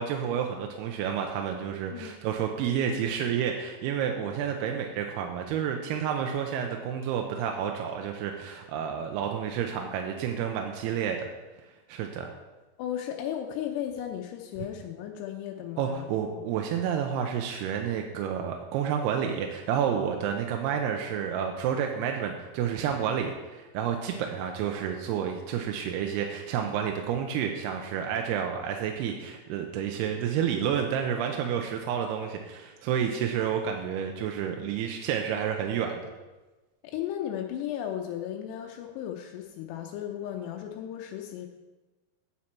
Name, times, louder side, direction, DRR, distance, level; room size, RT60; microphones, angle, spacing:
voice 1, 0.0-11.3 11.9-12.3 15.8-36.0, right 8 dB, 85° right, 3 dB, 2.6 m, -30 dB
voice 2, 12.8-16.4 36.8-41.5, left 10 dB, 85° left, 2 dB, 2.8 m, -35 dB
9.5 x 7.2 x 4.4 m, 1.2 s
omnidirectional pair, 4.8 m